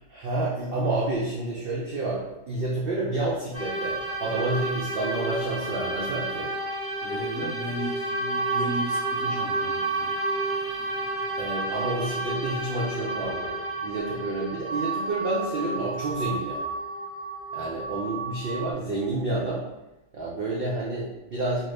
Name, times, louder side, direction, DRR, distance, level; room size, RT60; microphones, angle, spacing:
voice 1, 0.1-6.5 11.4-13.5 13.8-16.6 17.5-19.6 20.1-21.7, right 2 dB, 70° right, -5 dB, 0.5 m, -29 dB
sound 1, 3.5-18.7, right 2 dB, 20° left, 0.4 m, -30 dB
voice 2, 7.0-10.1, right 1 dB, 55° left, -5 dB, 0.9 m, -35 dB
2.7 x 2.5 x 3.2 m, 0.96 s
omnidirectional pair, 1.6 m